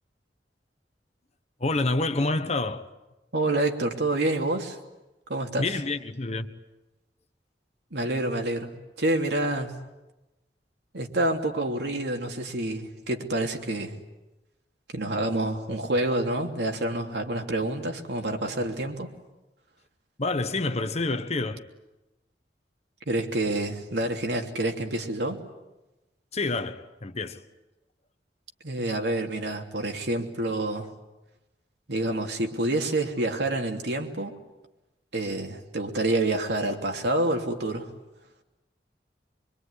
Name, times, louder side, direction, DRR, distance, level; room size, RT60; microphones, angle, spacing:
voice 1, 1.6-2.9 5.6-6.6 20.2-21.7 26.3-27.4, left 2 dB, 40° left, 1.3 m, -28 dB
voice 2, 3.3-4.8 5.3-5.7 7.9-8.7 9.0-9.7 10.9-14.0 14.9-19.1 23.1-25.4 28.6-30.9 31.9-34.3 35.1-37.9, right 2 dB, 70° right, 3.1 m, -28 dB
25.0 x 24.0 x 9.9 m
head